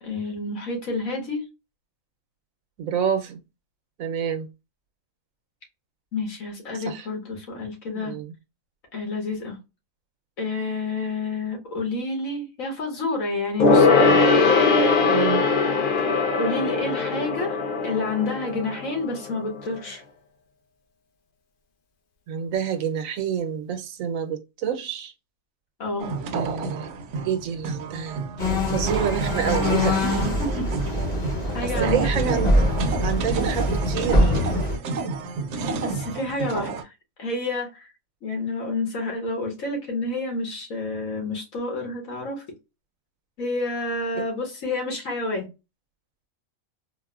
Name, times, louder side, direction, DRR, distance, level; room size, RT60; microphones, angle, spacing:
voice 1, 0.0-1.5 6.1-8.2 8.9-9.6 10.4-14.2 16.4-20.0 25.8-26.1 30.0-30.7 31.5-32.1 33.2-33.3 35.8-36.9 37.2-37.9 38.2-42.4 43.4-45.5, left 3 dB, 85° left, 1.7 m, -29 dB
voice 2, 2.8-3.4 4.0-4.5 6.7-7.1 7.9-8.3 15.0-15.5 22.3-25.1 26.3-26.9 27.2-28.2 28.7-30.0 31.6-32.7 33.0-34.3 44.1-44.2, right 8 dB, 90° right, 1.1 m, -28 dB
Gong, 13.6-19.5 19.8-19.9, left 4 dB, 50° left, 0.7 m, -20 dB
sound 1, 26.0-36.8, right 4 dB, 70° right, 0.9 m, -30 dB
sound 2, 28.4-34.8, left 1 dB, 35° left, 1.1 m, -24 dB
4.1 x 2.1 x 2.3 m
omnidirectional pair, 1.4 m